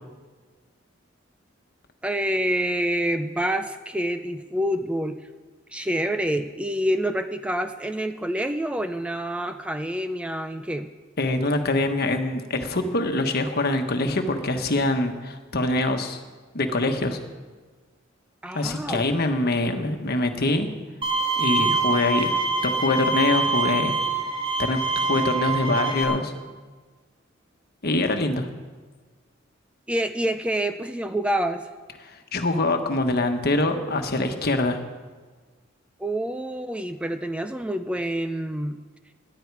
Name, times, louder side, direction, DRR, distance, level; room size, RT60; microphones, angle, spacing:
voice 1, 2.0-5.2 5.7-10.9 18.4-19.0 29.9-31.7 36.0-38.8, right 1 dB, 5° right, 8 dB, 0.4 m, -27 dB
voice 2, 11.2-16.2 16.5-17.2 18.5-20.7 21.4-22.3 22.6-24.0 24.6-26.3 27.8-28.5 32.3-34.8, left 2 dB, 50° left, 6 dB, 1.3 m, -24 dB
Bowed string instrument, 21.0-26.0, right 3 dB, 30° right, 2.8 m, -25 dB
18.0 x 11.5 x 4.8 m, 1.4 s
head